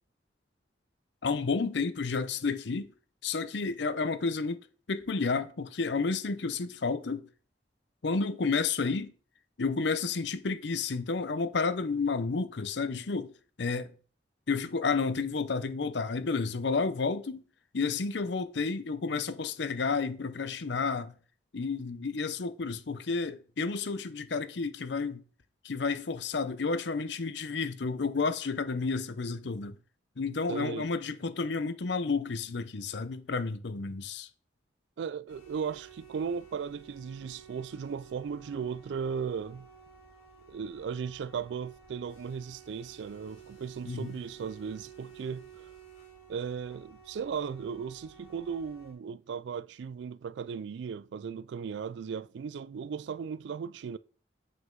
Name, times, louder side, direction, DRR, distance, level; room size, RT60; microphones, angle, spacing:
voice 1, 1.2-2.9 3.2-7.3 8.0-9.1 9.6-13.3 13.6-13.9 14.5-17.4 17.7-21.2 21.5-25.2 25.6-29.8 30.2-34.3 43.9-44.1, left 4 dB, 70° left, 0.6 m, -31 dB
voice 2, 30.5-30.9 35.0-39.7 40.5-45.7 46.3-54.0, right 6 dB, 70° right, 0.3 m, -36 dB
sound 1, 35.3-48.9, right 6 dB, 85° left, 3.3 m, -53 dB
7.4 x 5.5 x 3.8 m
head